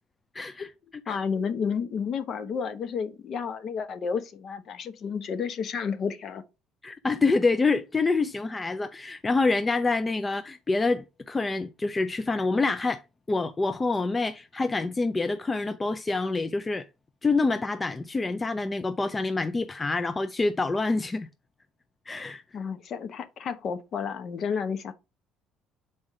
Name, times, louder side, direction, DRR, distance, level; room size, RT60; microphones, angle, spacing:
voice 1, 0.3-0.7 1.1-1.2 6.8-13.0 13.3-16.9 17.2-21.3 22.1-22.4, left 3 dB, 20° left, 0.4 m, -26 dB
voice 2, 1.1-6.4 22.5-24.9, left 6 dB, 55° left, 0.9 m, -31 dB
5.1 x 4.3 x 4.8 m
supercardioid pair, 90°, 0 cm